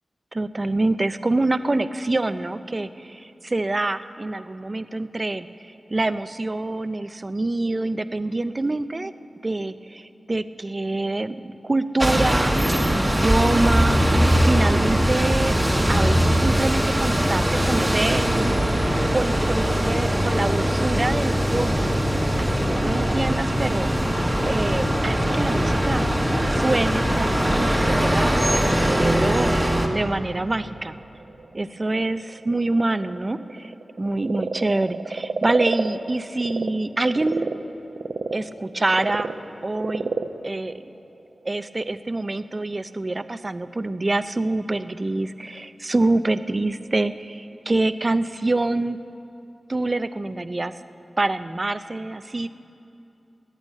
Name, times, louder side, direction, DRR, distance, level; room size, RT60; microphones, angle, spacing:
voice 1, 0.3-2.9 3.4-9.1 9.4-14.0 14.4-15.5 15.9-18.8 19.1-21.9 22.4-23.9 24.5-29.6 29.9-31.0 31.5-33.6 34.0-37.5 38.3-39.3 39.6-40.1 40.4-40.8 41.4-49.0 49.7-50.7 51.2-52.5, right 2 dB, 30° right, 12 dB, 0.5 m, -26 dB
sound 1, 12.0-29.9, equal, 10° right, 1.6 m, -21 dB
Frog, 24.0-36.7 37.1-41.7, right 4 dB, 75° right, 0.8 m, -33 dB
14.5 x 10.5 x 9.1 m, 2.7 s
wide cardioid pair, 85°, 0 cm